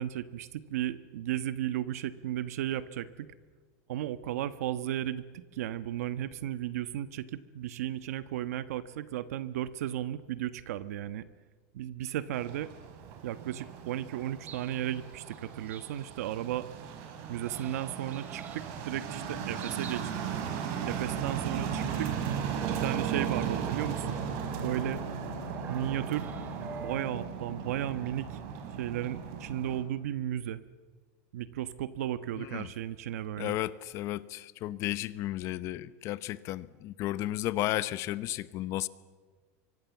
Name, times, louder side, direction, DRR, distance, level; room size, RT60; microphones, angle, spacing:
voice 1, 0.0-3.3 3.9-11.2 11.7-12.7 13.2-16.7 17.3-20.1 20.9-22.1 22.7-24.2 24.6-25.0 25.7-26.3 26.8-28.4 28.8-30.6 31.3-33.6, right 12 dB, 85° right, 13 dB, 1.3 m, -34 dB
sound 1, 12.3-29.8, right 7 dB, 50° right, 4.4 m, -36 dB
sound 2, 13.0-27.1, right 7 dB, 20° right, 2.2 m, -48 dB
voice 2, 32.4-32.7 33.4-38.9, left 15 dB, 35° left, 16 dB, 0.9 m, -33 dB
27.5 x 24.5 x 7.3 m, 1.4 s
supercardioid pair, 165°, 8 cm